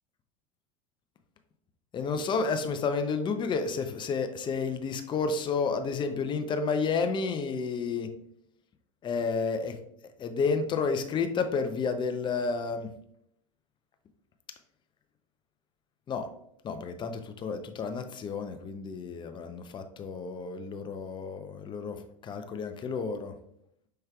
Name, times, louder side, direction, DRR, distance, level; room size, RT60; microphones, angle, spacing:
voice 1, 1.9-8.1 9.0-9.8 10.2-12.9 16.1-16.3 16.6-23.3, left 5 dB, 30° left, 7 dB, 0.5 m, -31 dB
5.6 x 3.2 x 2.3 m, 0.73 s
hypercardioid pair, 85°, 17 cm